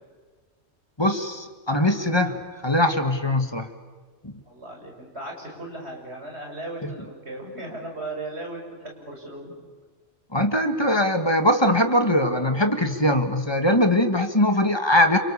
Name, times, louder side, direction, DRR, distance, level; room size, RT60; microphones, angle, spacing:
voice 1, 1.0-3.7 4.2-4.4 6.8-6.9 10.3-15.2, left 1 dB, 20° left, 6 dB, 2.1 m, -21 dB
voice 2, 4.5-9.5, right 2 dB, 60° right, 1 dB, 7.0 m, -37 dB
29.5 x 27.5 x 7.1 m, 1.5 s
omnidirectional pair, 1.3 m